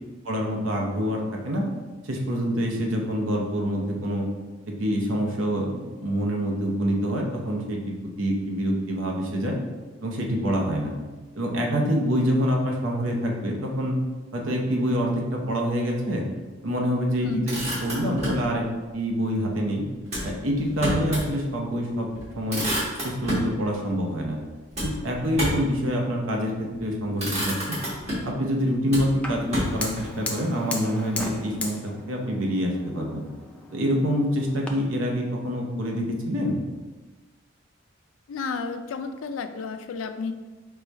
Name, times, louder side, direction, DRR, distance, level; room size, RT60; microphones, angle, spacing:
voice 1, 0.2-1.6 2.0-4.3 4.7-9.6 10.0-10.9 11.3-14.0 14.3-16.2 16.6-18.6 18.9-19.8 20.2-22.1 22.4-22.6 23.0-24.4 24.8-27.8 28.2-33.2 33.7-36.6, equal, 80° right, 0 dB, 0.8 m, -26 dB
Motor vehicle (road), 17.2-18.5 20.1-21.3 21.7-21.8 22.1-23.5 24.7-25.7 26.6-26.8 27.2-28.4 28.9-30.1, equal, 35° right, 1.4 m, -29 dB
Fire, 29.2-34.7, left 2 dB, 5° left, 0.4 m, -37 dB
voice 2, 38.3-40.3, left 4 dB, 85° left, 8 dB, 0.4 m, -31 dB
4.9 x 2.3 x 4.0 m, 1.3 s
head